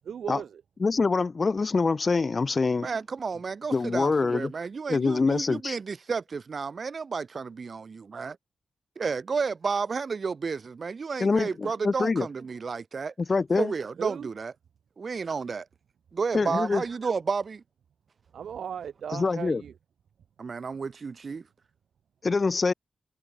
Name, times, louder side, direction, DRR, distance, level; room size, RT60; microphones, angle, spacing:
voice 1, 0.0-0.6 14.0-14.3 18.3-19.7, right 8 dB, 90° right, 1.1 m, -36 dB
voice 2, 0.8-2.9 3.7-4.5 4.9-5.8 11.2-12.3 13.3-13.7 16.3-16.8 19.1-19.6 22.2-22.7, left 4 dB, 35° left, 0.5 m, -25 dB
voice 3, 2.8-8.4 9.0-13.1 13.6-14.5 15.0-15.6 16.1-17.6 20.4-21.4, right 5 dB, 45° right, 0.9 m, -32 dB
wide cardioid pair, 140°, 0 cm